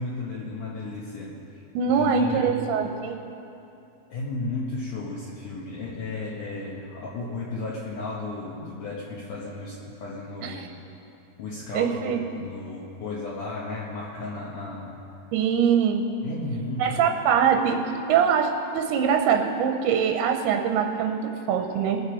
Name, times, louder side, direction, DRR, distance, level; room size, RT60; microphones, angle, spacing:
voice 1, 0.0-1.6 2.0-2.6 4.1-10.8 11.4-15.0 16.2-17.1, left 3 dB, 65° left, -5 dB, 2.5 m, -34 dB
voice 2, 1.7-3.2 10.4-10.7 11.7-12.2 15.3-16.0 16.8-17.8 18.1-22.0, right 7 dB, 90° right, 4 dB, 2.7 m, -23 dB
22.0 x 7.5 x 5.0 m, 2.7 s
omnidirectional pair, 4.6 m